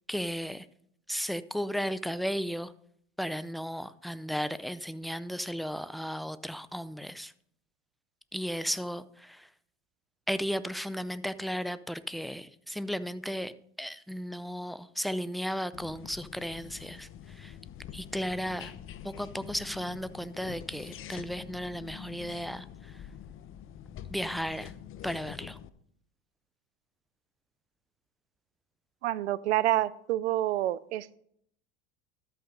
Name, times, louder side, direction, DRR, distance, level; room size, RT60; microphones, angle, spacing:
voice 1, 0.1-0.6 1.1-2.7 3.2-7.3 8.3-9.5 10.3-13.5 13.8-17.1 17.4-17.5 17.9-18.8 19.0-22.6 24.1-24.7 25.0-25.6, equal, ahead, 15 dB, 0.4 m, -34 dB
sound 1, 15.7-25.7, left 10 dB, 40° left, 0.7 m, -46 dB
voice 2, 29.0-31.2, right 14 dB, 85° right, 20 dB, 0.5 m, -28 dB
12.5 x 5.8 x 5.2 m, 0.69 s
hypercardioid pair, 80°, 33 cm